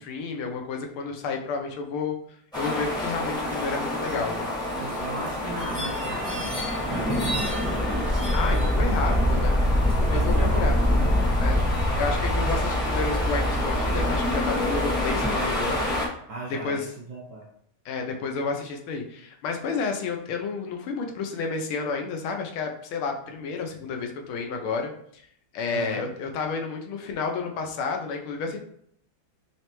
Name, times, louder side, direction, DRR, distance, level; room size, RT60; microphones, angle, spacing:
voice 1, 0.0-2.2 2.5-4.5 8.3-9.5 10.1-10.8 11.4-11.6 12.0-15.8 16.6-16.9 17.8-25.2 25.5-28.6, left 4 dB, 85° left, 3 dB, 1.5 m, -31 dB
sound 1, 2.5-16.1, left 1 dB, 5° left, 0.6 m, -25 dB
voice 2, 4.8-7.9 8.5-9.3 10.1-10.7 16.3-17.5 25.7-26.1, right 1 dB, 65° right, -4 dB, 1.0 m, -37 dB
4.0 x 3.2 x 2.9 m, 0.67 s
omnidirectional pair, 2.3 m